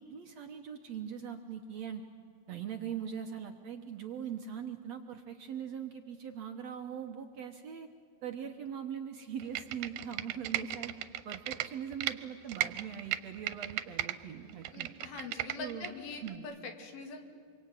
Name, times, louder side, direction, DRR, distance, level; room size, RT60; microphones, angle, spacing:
voice 1, 0.0-2.0 2.5-7.9 8.2-11.0 11.3-14.9 15.6-16.0 16.2-16.5, right 8 dB, 65° right, 5 dB, 1.9 m, -41 dB
Computer keyboard, 9.4-12.1 12.5-14.2 14.5-15.9 16.3-16.4, right 14 dB, 85° right, 2.8 m, -35 dB
voice 2, 14.7-17.2, left 4 dB, 80° left, 5 dB, 4.3 m, -43 dB
26.5 x 24.0 x 9.2 m, 2.2 s
omnidirectional pair, 4.2 m